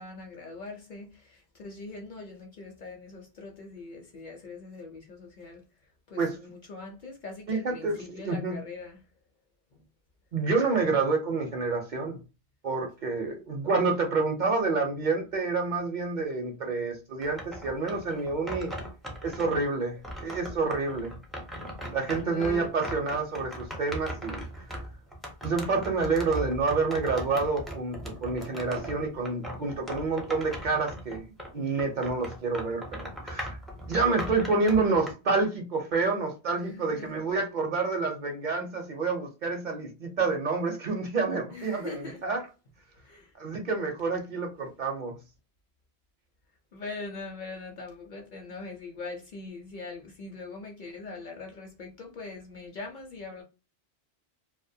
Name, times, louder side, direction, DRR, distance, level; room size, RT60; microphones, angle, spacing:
voice 1, 0.0-9.0 9.7-9.8 22.2-22.8 36.5-37.2 41.5-42.2 42.9-43.3 46.7-53.4, left 3 dB, 55° left, 0.6 m, -42 dB
voice 2, 7.5-8.6 10.3-12.2 12.6-18.7 19.2-21.1 21.9-24.7 25.4-31.2 31.5-33.6 33.9-42.4 43.4-45.2, right 4 dB, 55° right, 0.6 m, -28 dB
sound 1, 17.2-19.7 20.0-31.5 31.8-35.1, equal, ahead, 0.4 m, -39 dB
2.5 x 2.1 x 2.6 m
omnidirectional pair, 1.1 m